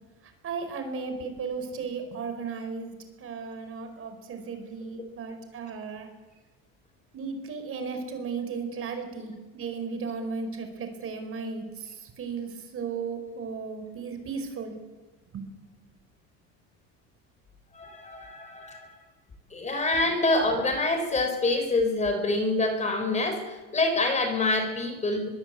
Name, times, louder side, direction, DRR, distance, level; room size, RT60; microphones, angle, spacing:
voice 1, 0.2-6.1 7.1-14.7 15.3-15.4, right 5 dB, 35° right, 7 dB, 4.9 m, -35 dB
voice 2, 17.7-18.9 19.5-25.3, left 2 dB, 20° left, 7 dB, 3.9 m, -26 dB
23.5 x 23.0 x 8.5 m, 1.2 s
cardioid pair, 160°, 37 cm